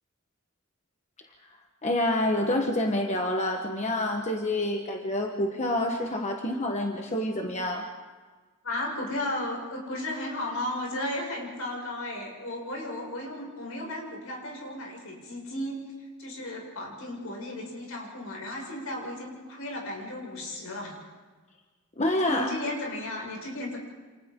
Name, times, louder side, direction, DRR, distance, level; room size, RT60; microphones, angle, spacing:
voice 1, 1.8-7.9 22.0-22.5, left 1 dB, 30° left, 3 dB, 1.2 m, -27 dB
voice 2, 8.6-15.8 16.2-21.0 22.2-23.8, left 1 dB, 75° left, -2 dB, 6.3 m, -34 dB
29.0 x 27.5 x 3.8 m, 1.4 s
head